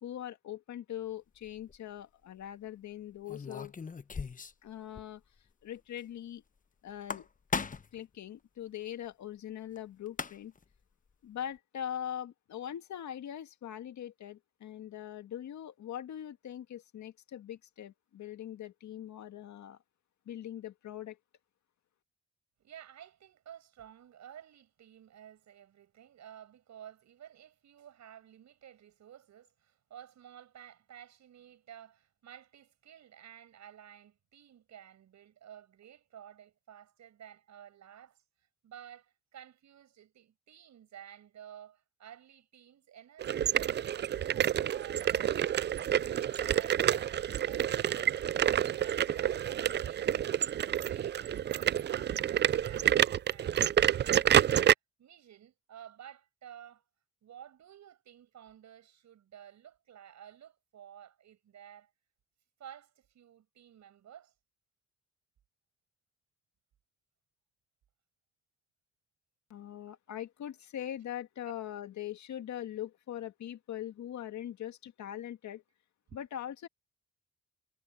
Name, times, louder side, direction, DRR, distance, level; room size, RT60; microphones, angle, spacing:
voice 1, 0.0-3.7 4.6-5.2 5.6-6.4 6.8-7.3 7.9-10.5 11.2-19.8 20.3-21.2 69.5-75.6 76.1-76.7, left 11 dB, 70° left, 2.1 m, -41 dB
sound 1, 1.4-1.8 3.3-4.7 5.0-5.1 5.4-5.5 6.9-8.0 9.8-9.9 10.1-10.6, left 5 dB, 25° left, 1.0 m, -37 dB
voice 2, 22.6-38.2 38.6-45.7 46.0-48.0 48.4-50.3 50.8-54.7 55.0-56.9 57.2-61.9 62.6-64.3 76.1-76.2, right 10 dB, 65° right, 7.2 m, -53 dB
sound 2, 43.2-54.7, right 10 dB, 35° right, 0.4 m, -28 dB
cardioid pair, 90°, 30 cm